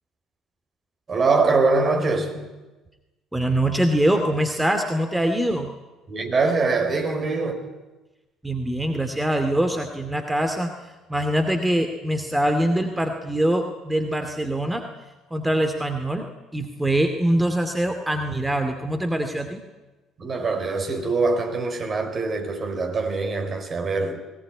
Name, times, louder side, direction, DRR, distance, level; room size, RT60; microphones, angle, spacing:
voice 1, 1.1-2.5 6.1-7.7 20.2-24.2, right 3 dB, 40° right, 4.3 m, -23 dB
voice 2, 3.3-5.7 8.4-14.8 15.3-19.6, right 1 dB, 10° right, 2.3 m, -23 dB
20.0 x 18.0 x 9.6 m
hypercardioid pair, 55°, 0 cm